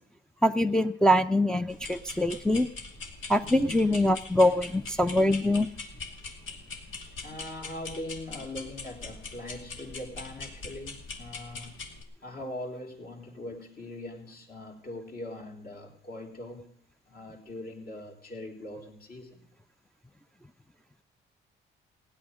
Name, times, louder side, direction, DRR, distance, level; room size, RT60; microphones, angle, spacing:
voice 1, 0.4-2.7 3.3-5.7, left 1 dB, 5° left, 0.5 m, -24 dB
sound 1, 1.7-12.0, left 3 dB, 80° left, 2.5 m, -42 dB
voice 2, 3.4-3.8 7.2-11.8 12.2-16.7 17.1-19.4, left 1 dB, 50° left, 3.3 m, -41 dB
16.0 x 10.5 x 6.2 m
cardioid pair, 90°, 20 cm